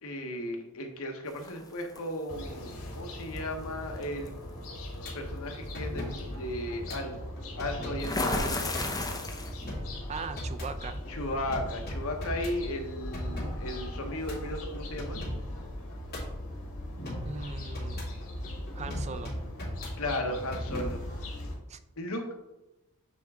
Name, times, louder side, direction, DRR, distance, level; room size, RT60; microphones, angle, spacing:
voice 1, 0.0-4.3 5.1-7.2 7.6-8.7 11.1-15.2 20.0-21.0 22.0-22.3, left 1 dB, 70° left, 4 dB, 1.0 m, -35 dB
sound 1, 1.4-2.0 3.4-3.5 4.0-4.3 8.0-9.7, left 2 dB, 15° left, 0.8 m, -31 dB
sound 2, 2.3-21.5, left 1 dB, 85° left, 1.6 m, -41 dB
sound 3, 5.0-21.3, equal, 45° left, 2.4 m, -39 dB
voice 2, 10.1-11.0 17.2-18.1 18.7-19.3 21.7-21.8, right 4 dB, 30° right, 10 dB, 0.4 m, -39 dB
9.1 x 3.4 x 3.6 m, 0.98 s
head